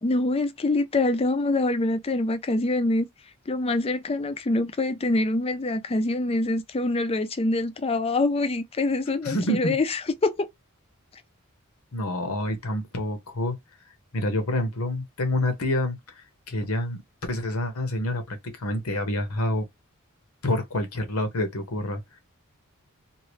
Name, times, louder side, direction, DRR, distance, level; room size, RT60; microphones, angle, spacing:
voice 1, 0.0-3.1 3.5-10.5, left 2 dB, 25° left, 0.4 m, -25 dB
voice 2, 9.2-9.8 11.9-13.6 14.1-16.2 16.5-17.0 17.3-19.7 20.4-22.0, left 1 dB, 85° left, 1.0 m, -27 dB
2.8 x 2.6 x 3.1 m
head